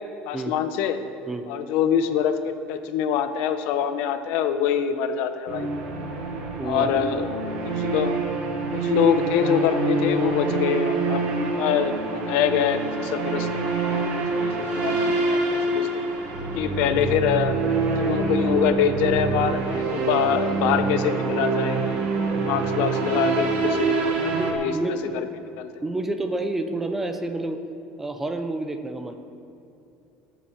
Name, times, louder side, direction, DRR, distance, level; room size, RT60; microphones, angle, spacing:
voice 1, 0.3-1.0 1.5-5.7 6.6-7.3 7.6-8.1 8.7-13.5 13.7-14.1 14.4-16.0 16.5-17.6 18.0-21.8 22.4-25.2 25.6-25.7, left 8 dB, 60° left, 9 dB, 0.8 m, -25 dB
sound 1, 5.5-24.5, right 3 dB, 50° right, 1.6 m, -26 dB
voice 2, 6.6-6.9 24.3-25.3 25.8-27.6 28.0-29.2, right 2 dB, 10° right, 7 dB, 0.6 m, -29 dB
19.5 x 7.3 x 4.4 m, 2.7 s
cardioid pair, 180°, 3 cm